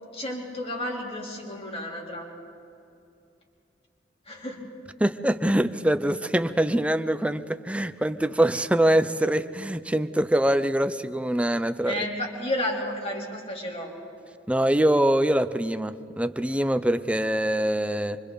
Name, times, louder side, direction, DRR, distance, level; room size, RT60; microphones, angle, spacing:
voice 1, 0.1-2.3 4.3-4.6 11.9-13.9, left 1 dB, 35° left, -1 dB, 3.5 m, -32 dB
voice 2, 5.0-12.0 14.5-18.2, right 1 dB, 5° right, 11 dB, 0.5 m, -24 dB
26.5 x 25.0 x 4.0 m, 2.7 s
head